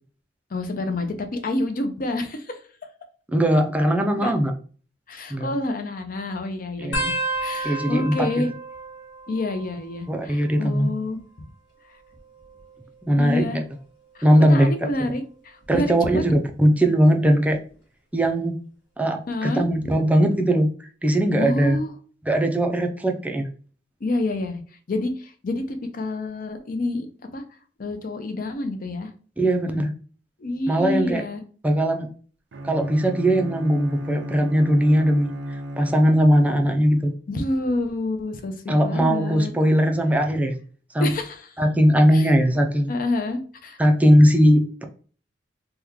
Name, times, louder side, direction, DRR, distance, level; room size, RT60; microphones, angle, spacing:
voice 1, 0.5-2.6 4.1-4.3 5.1-7.1 7.4-8.5 9.3-11.5 13.2-13.6 14.1-16.3 19.3-19.6 21.4-21.9 24.0-24.6 24.9-27.1 27.3-27.4 27.8-29.1 30.4-31.4 37.3-39.5 39.9-40.0 41.0-41.6 42.1-42.3 42.9-43.8, left 2 dB, 50° left, 7 dB, 0.5 m, -28 dB
voice 2, 3.3-4.5 5.3-5.5 6.8-7.1 7.6-8.3 10.1-10.9 13.1-13.6 14.2-14.7 15.7-17.6 18.1-18.6 19.0-20.7 21.0-21.8 22.2-23.5 29.4-29.9 30.7-31.2 31.6-32.1 32.6-35.3 35.8-37.1 38.7-40.6 40.9-41.1 41.6-42.9 43.8-44.8, equal, 10° right, 4 dB, 0.4 m, -19 dB
sound 1, 6.9-10.1 10.4-11.0 12.0-13.5 14.1-14.4 15.6-16.0 17.5-17.6, right 2 dB, 75° left, 1.0 m, -33 dB
Bowed string instrument, 32.5-36.7, right 1 dB, 70° right, 0.4 m, -34 dB
3.0 x 2.2 x 3.6 m, 0.41 s
head